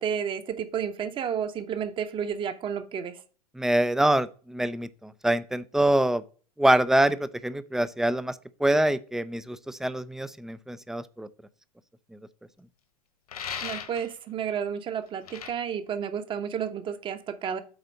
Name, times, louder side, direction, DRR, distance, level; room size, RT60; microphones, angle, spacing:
voice 1, 0.0-3.2 13.6-17.6, right 7 dB, 25° right, 0.8 m, -31 dB
voice 2, 3.6-6.2 6.6-8.4 8.6-11.3, right 1 dB, ahead, 0.3 m, -25 dB
sound 1, 13.3-14.1 15.3-15.5, left 7 dB, 75° left, 1.3 m, -36 dB
8.0 x 4.1 x 5.2 m
figure-of-eight pair, 95°, 20 cm